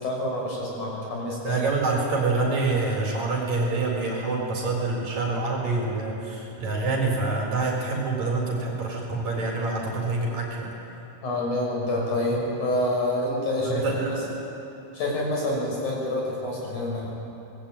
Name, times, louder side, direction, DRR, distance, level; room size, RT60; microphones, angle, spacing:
voice 1, 0.0-1.6 11.2-14.2 14.9-17.1, left 1 dB, 50° left, -3 dB, 7.5 m, -27 dB
voice 2, 1.4-10.7 13.7-14.2, right 3 dB, 45° right, -3 dB, 4.9 m, -26 dB
24.0 x 20.5 x 8.9 m, 3.0 s
omnidirectional pair, 4.5 m